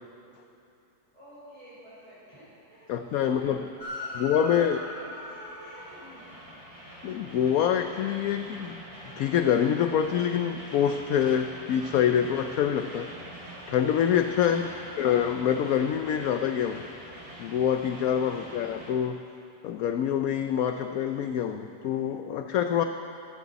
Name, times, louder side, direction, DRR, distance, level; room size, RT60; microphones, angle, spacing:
voice 1, 1.1-6.4 14.4-14.9 18.2-18.5, equal, 15° right, -12 dB, 4.4 m, -49 dB
voice 2, 2.9-3.6 4.2-4.8 7.0-8.8 9.2-13.1 13.7-14.7 15.0-16.8 17.4-19.2 19.6-22.8, left 9 dB, 70° left, 7 dB, 0.9 m, -26 dB
Train, 3.8-18.9, equal, 35° right, 3.5 m, -43 dB
26.5 x 11.0 x 4.1 m, 2.8 s
omnidirectional pair, 1.9 m